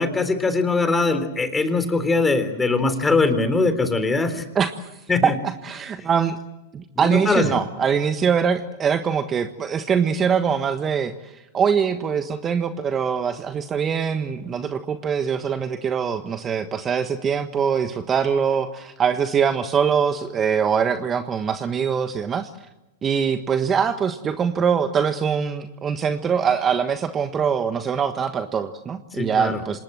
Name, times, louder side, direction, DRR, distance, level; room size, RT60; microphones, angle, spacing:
voice 1, 0.0-4.5 5.1-5.3 7.0-7.5 29.1-29.6, left 3 dB, 15° left, 9 dB, 3.7 m, -21 dB
voice 2, 4.5-4.9 5.2-6.4 6.7-22.5 23.0-29.8, right 7 dB, 25° right, 8 dB, 1.4 m, -23 dB
26.5 x 19.5 x 7.7 m, 0.99 s
hypercardioid pair, 105°, 0 cm